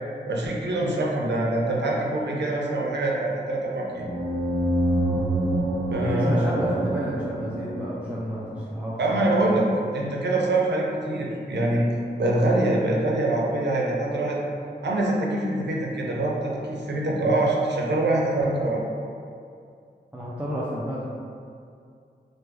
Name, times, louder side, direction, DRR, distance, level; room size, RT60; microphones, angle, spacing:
voice 1, 0.3-4.1 5.9-6.8 9.0-11.9 12.2-14.4 14.8-18.8, right 2 dB, 75° right, -3 dB, 0.6 m, -24 dB
Battle Horn, 3.9-8.5, right 1 dB, 10° left, 0.8 m, -27 dB
voice 2, 5.9-9.6 20.1-21.1, equal, 5° right, -7 dB, 0.4 m, -31 dB
3.2 x 2.1 x 3.2 m, 2.4 s
wide cardioid pair, 70°, 18 cm